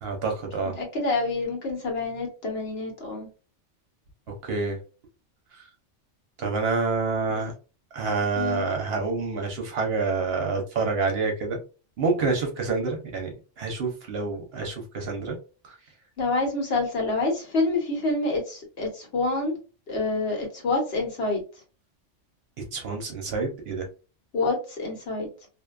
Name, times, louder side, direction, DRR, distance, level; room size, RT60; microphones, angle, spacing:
voice 1, 0.0-0.8 4.4-4.8 5.5-5.7 6.4-7.5 7.9-11.6 12.0-15.4 15.6-15.7 22.6-23.9, right 4 dB, 60° right, 2 dB, 0.8 m, -28 dB
voice 2, 0.8-3.3 7.3-7.4 8.4-8.6 16.2-19.6 19.9-21.4 24.3-25.3, left 2 dB, 55° left, 0 dB, 1.1 m, -27 dB
2.5 x 2.2 x 2.3 m, 0.34 s
omnidirectional pair, 1.2 m